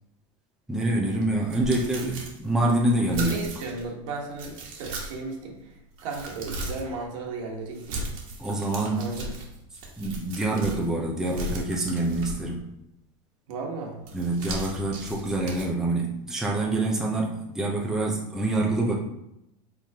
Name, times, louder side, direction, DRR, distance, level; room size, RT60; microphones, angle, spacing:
voice 1, 0.7-3.4 8.4-9.1 10.0-12.6 14.1-18.9, right 2 dB, 5° right, -3 dB, 0.7 m, -26 dB
sound 1, 1.1-3.8 4.3-5.3 5.7-6.9 7.7-10.9 11.2-12.6 14.0-15.6, right 2 dB, 50° right, 1.4 m, -37 dB
voice 2, 3.2-5.8 6.0-8.1 8.9-9.3 13.5-14.0, right 3 dB, 70° right, 0 dB, 1.4 m, -35 dB
4.6 x 3.7 x 2.9 m, 0.83 s
supercardioid pair, 130°, 17 cm